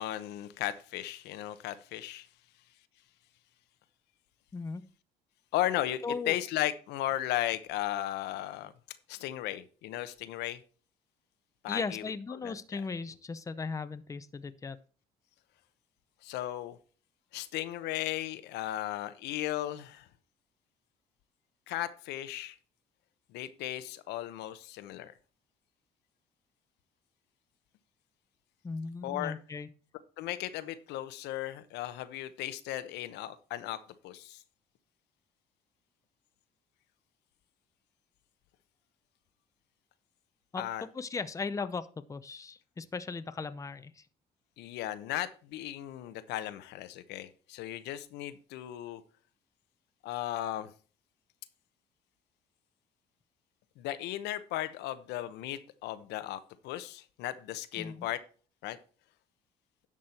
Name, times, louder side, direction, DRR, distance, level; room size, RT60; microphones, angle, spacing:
voice 1, 0.0-2.3 5.5-8.7 9.1-10.6 11.6-12.0 12.4-12.5 16.2-16.8 17.3-20.1 21.7-22.6 23.3-25.1 29.0-29.3 30.2-34.4 40.6-40.8 44.6-49.0 50.0-50.7 53.8-58.2 58.6-58.8, left 13 dB, 85° left, 12 dB, 0.9 m, -36 dB
voice 2, 4.5-4.8 6.0-6.4 11.7-14.8 28.6-29.7 40.5-44.1 57.7-58.1, left 4 dB, 20° left, 12 dB, 0.7 m, -37 dB
11.0 x 6.2 x 4.3 m, 0.38 s
cardioid pair, 110°, 17 cm